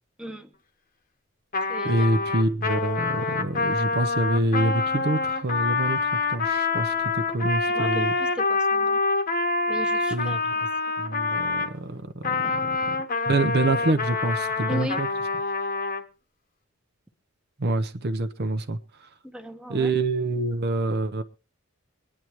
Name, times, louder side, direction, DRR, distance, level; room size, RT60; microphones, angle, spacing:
voice 1, 0.2-0.5 1.7-2.2 7.7-9.0 9.7-10.6 12.4-12.9 14.7-15.0 19.2-20.0, equal, 5° right, 0.9 m, -37 dB
Trumpet, 1.5-11.7 12.2-16.0, left 3 dB, 45° left, 1.1 m, -26 dB
voice 2, 1.9-8.1 10.1-10.4 11.0-12.4 13.3-15.1 17.6-18.8 19.7-21.2, right 2 dB, 50° right, 0.8 m, -26 dB
23.5 x 9.9 x 3.1 m
head